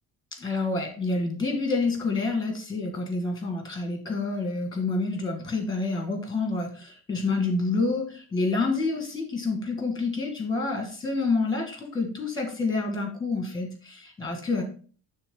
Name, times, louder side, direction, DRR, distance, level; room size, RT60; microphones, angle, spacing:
voice 1, 0.4-14.6, left 3 dB, 10° left, 3 dB, 1.9 m, -28 dB
11.0 x 3.7 x 3.8 m, 0.40 s
cardioid pair, 170°, 41 cm